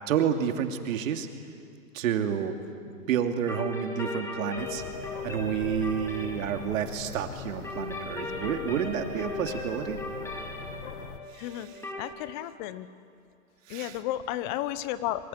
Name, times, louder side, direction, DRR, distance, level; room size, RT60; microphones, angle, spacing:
voice 1, 0.1-1.3 1.9-2.6 2.8-4.8 5.2-10.0 11.3-11.7 13.7-14.0, right 8 dB, 60° right, 6 dB, 2.8 m, -30 dB
sound 1, 3.5-12.0, left 2 dB, 5° left, 2.5 m, -38 dB
sound 2, 4.5-11.2, left 6 dB, 65° left, 2.3 m, -42 dB
voice 2, 11.4-11.7 12.0-12.9 13.7-15.3, left 13 dB, 30° left, 15 dB, 1.0 m, -33 dB
25.5 x 24.0 x 10.0 m, 2.4 s
hypercardioid pair, 150°, 44 cm